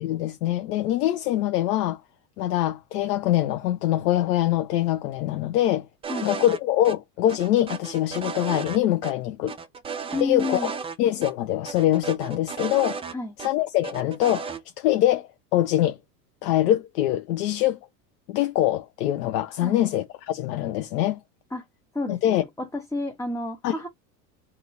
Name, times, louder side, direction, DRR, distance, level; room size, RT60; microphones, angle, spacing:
voice 1, 0.0-2.0 2.4-5.9 6.2-9.5 10.2-13.0 13.4-16.0 16.4-17.8 18.3-21.2 22.1-22.4 23.6-23.7, left 13 dB, 70° left, 0.7 m, -24 dB
sound 1, 6.0-6.6 6.8-7.0 7.3-8.8 9.0-9.1 9.5-11.0 11.2-11.3 11.7-13.5 13.8-14.6, right 6 dB, 10° right, 0.4 m, -34 dB
voice 2, 10.1-10.7 13.1-13.3 19.6-19.8 21.5-21.6 21.9-23.9, left 2 dB, 5° left, 0.8 m, -30 dB
2.7 x 2.7 x 4.0 m
hypercardioid pair, 90°, 50 cm